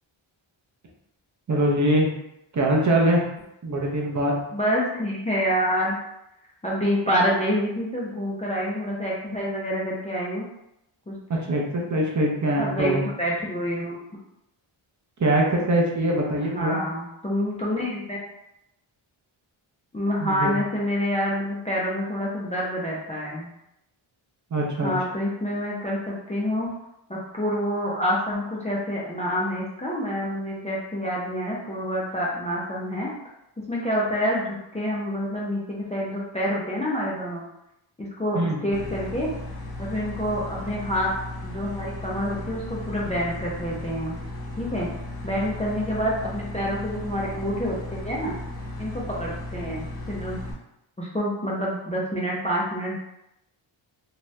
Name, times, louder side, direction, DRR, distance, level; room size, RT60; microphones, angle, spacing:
voice 1, 1.5-2.1 2.5-3.3 3.6-4.4 11.3-13.0 15.2-16.8 20.2-20.5 24.5-24.9 38.3-38.7, right 1 dB, 40° right, -1 dB, 0.6 m, -23 dB
voice 2, 4.5-6.0 6.6-10.5 11.1-11.2 12.6-14.0 16.4-18.2 19.9-23.5 24.8-26.7 27.1-33.1 33.7-37.4 38.0-39.3 39.8-41.1 41.4-44.2 44.6-44.9 45.2-48.3 48.8-50.4 51.0-53.0, equal, 15° left, -5 dB, 0.4 m, -27 dB
sound 1, 38.7-50.5, left 1 dB, 70° left, 1.1 m, -36 dB
2.7 x 2.3 x 3.1 m, 0.84 s
wide cardioid pair, 150°, 49 cm